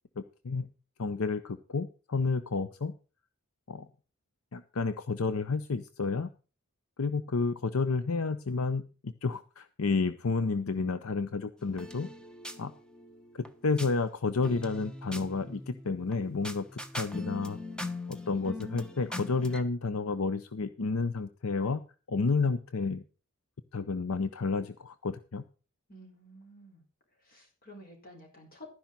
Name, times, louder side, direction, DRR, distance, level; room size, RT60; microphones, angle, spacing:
voice 1, 0.2-0.7 1.0-2.9 3.7-3.9 4.5-6.3 7.0-12.1 12.6-12.7 13.3-17.6 18.1-21.8 22.1-23.0 23.7-25.4, left 4 dB, 80° left, 13 dB, 0.7 m, -31 dB
voice 2, 10.7-11.2 25.9-26.8 27.2-28.7, equal, 45° left, 2 dB, 4.7 m, -51 dB
sound 1, 11.6-13.9 14.4-19.6, left 2 dB, 5° left, 1.0 m, -41 dB
12.0 x 10.5 x 4.1 m, 0.35 s
head